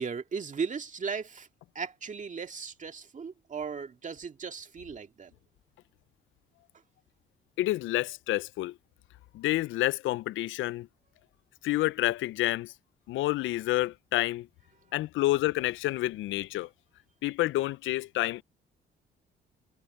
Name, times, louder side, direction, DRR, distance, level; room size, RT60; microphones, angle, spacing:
voice 1, 0.0-1.5 1.8-5.3, right 5 dB, 40° right, 2.1 m, -36 dB
voice 2, 7.6-8.7 9.3-10.9 11.6-12.7 13.1-14.5 14.9-16.7 17.2-18.4, left 16 dB, 80° left, 0.4 m, -29 dB
cardioid pair, 90°, 20 cm